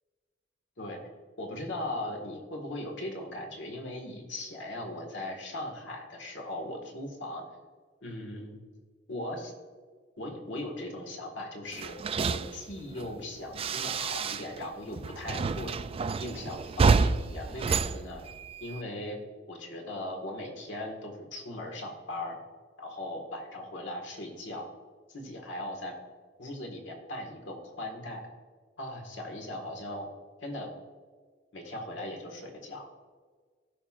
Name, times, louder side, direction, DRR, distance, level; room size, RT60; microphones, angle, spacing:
voice 1, 1.4-7.4 8.0-8.6 9.1-9.5 10.2-12.0 12.2-15.7 16.2-18.2 18.6-19.2 19.5-22.4 22.8-24.7 25.1-25.9 26.4-28.2 28.8-30.1 30.4-30.7 31.5-32.9, left 1 dB, 75° left, 1 dB, 1.8 m, -38 dB
sound 1, 11.7-14.7 14.9-18.8, right 5 dB, 30° right, 0.3 m, -29 dB
17.0 x 5.8 x 2.5 m, 1.6 s
head